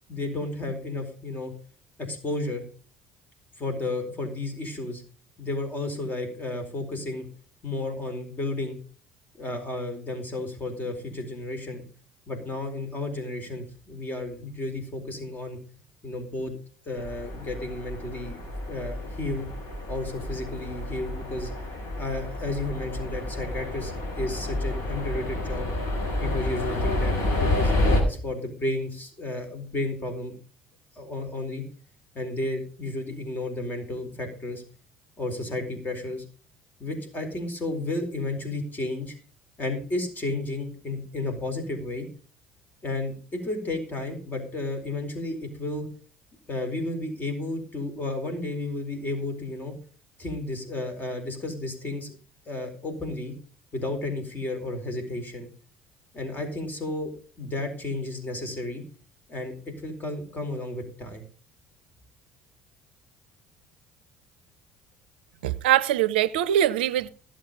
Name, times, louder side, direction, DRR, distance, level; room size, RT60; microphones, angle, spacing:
voice 1, 0.1-1.5 2.1-2.6 3.6-5.0 5.4-7.2 7.6-8.8 9.4-11.8 12.3-15.6 16.0-16.5 16.9-19.5 19.9-21.5 22.0-25.7 26.2-30.3 30.9-31.6 32.1-34.6 35.2-36.2 36.8-39.1 39.6-42.1 42.8-45.9 46.5-49.7 50.2-52.1 52.5-53.3 53.7-55.5 56.1-57.1 57.4-58.8 59.3-59.5 59.8-61.2, left 2 dB, 35° left, 4.5 m, -32 dB
sound 1, 17.0-28.0, left 1 dB, 60° left, 5.8 m, -29 dB
voice 2, 65.4-67.1, right 12 dB, 75° right, 0.5 m, -22 dB
16.0 x 7.8 x 5.4 m
hypercardioid pair, 60°, 5 cm